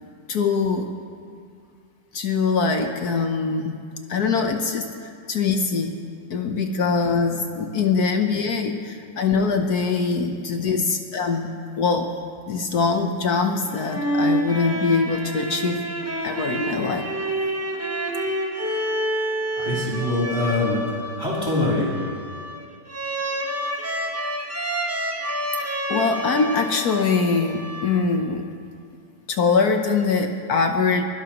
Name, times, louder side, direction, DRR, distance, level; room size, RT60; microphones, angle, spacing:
voice 1, 0.3-0.9 2.1-3.8 4.1-6.0 6.3-12.1 12.5-15.8 16.2-17.1 25.9-28.5 29.3-31.0, left 4 dB, 60° left, 4 dB, 1.2 m, -23 dB
sound 1, 13.7-28.3, right 1 dB, 15° right, 0.6 m, -28 dB
voice 2, 19.4-22.0, left 1 dB, 30° left, -7 dB, 3.5 m, -25 dB
23.5 x 16.5 x 3.0 m, 2.3 s
omnidirectional pair, 2.1 m